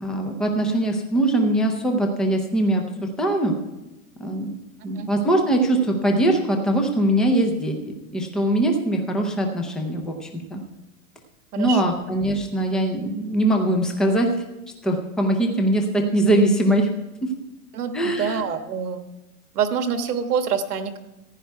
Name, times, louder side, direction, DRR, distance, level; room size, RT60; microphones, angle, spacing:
voice 1, 0.0-3.6 4.2-4.5 4.8-7.8 8.1-10.6 11.6-14.3 14.8-16.9 17.2-17.3 17.9-18.4, right 1 dB, ahead, 3 dB, 0.5 m, -22 dB
voice 2, 11.5-12.0 17.7-19.0 19.5-21.0, right 7 dB, 85° right, 8 dB, 1.4 m, -26 dB
15.0 x 10.0 x 4.6 m, 1.0 s
supercardioid pair, 155°, 45 cm